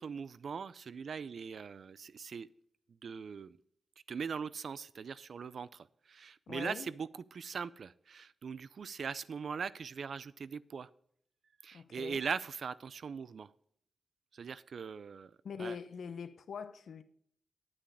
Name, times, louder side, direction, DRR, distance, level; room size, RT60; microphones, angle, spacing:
voice 1, 0.0-2.5 3.0-3.6 4.1-10.9 11.6-13.5 14.3-15.8, right 6 dB, 65° right, 0.4 m, -41 dB
voice 2, 6.5-6.9 11.7-12.2 15.4-17.0, left 6 dB, 75° left, 0.8 m, -43 dB
10.0 x 8.7 x 5.0 m
cardioid pair, 85°, 0 cm